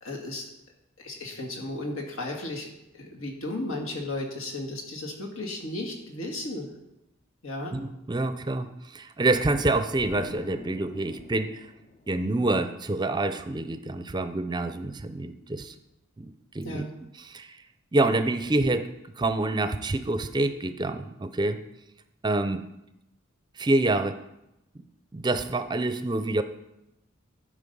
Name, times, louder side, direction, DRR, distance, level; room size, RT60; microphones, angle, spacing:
voice 1, 0.0-0.4 1.0-2.7 2.9-6.7 7.4-7.8 16.6-16.9, left 2 dB, 85° left, 0 dB, 1.9 m, -34 dB
voice 2, 7.7-11.6 12.1-15.7 16.2-16.8 17.2-17.6 17.9-21.6 22.2-22.6 23.6-24.2 24.8-24.9 25.1-26.4, right 2 dB, 20° right, 10 dB, 0.5 m, -27 dB
Explosion, 10.0-12.7, left 2 dB, 35° left, 0.4 m, -45 dB
12.0 x 5.2 x 5.4 m, 0.88 s
head